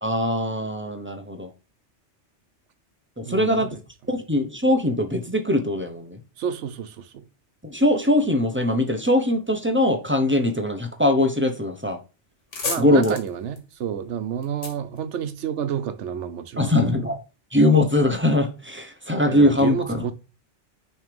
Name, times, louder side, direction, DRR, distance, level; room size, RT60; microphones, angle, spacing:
voice 1, 0.0-1.5 3.2-3.7 4.1-6.2 7.6-12.0 12.8-13.2 16.6-17.2 17.5-20.0, left 1 dB, 10° right, 0.7 m, -21 dB
voice 2, 3.2-3.7 6.4-7.2 12.6-17.1 19.3-20.1, right 8 dB, 80° right, 1.0 m, -30 dB
sound 1, 12.2-15.8, left 3 dB, 85° left, 1.8 m, -35 dB
6.2 x 3.3 x 5.2 m
omnidirectional pair, 1.2 m